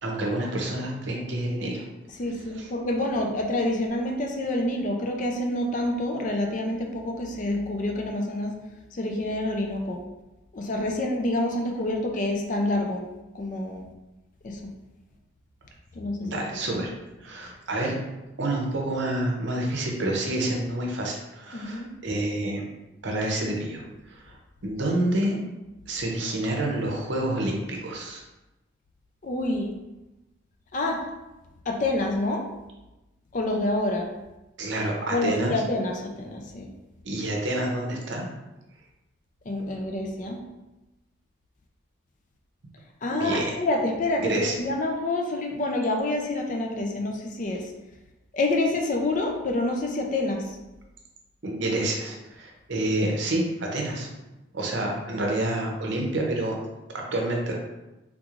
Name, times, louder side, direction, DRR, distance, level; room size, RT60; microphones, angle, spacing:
voice 1, 0.0-1.9 2.5-2.7 16.2-16.9 17.2-18.0 18.4-22.6 23.0-24.4 24.6-25.4 25.9-28.2 34.6-35.5 37.0-38.3 43.1-43.5 44.2-44.5 51.4-54.1 54.5-56.6 56.9-57.6, right 1 dB, 65° right, 0 dB, 0.7 m, -28 dB
voice 2, 2.2-8.5 8.9-10.0 10.5-13.0 13.3-13.9 14.4-14.7 15.9-16.5 21.5-21.9 29.2-29.7 30.7-31.1 31.7-32.5 33.3-34.1 35.1-36.7 39.5-40.4 43.0-47.7 48.3-50.6, left 2 dB, 40° left, 2 dB, 0.4 m, -27 dB
3.6 x 3.0 x 2.4 m, 1.0 s
head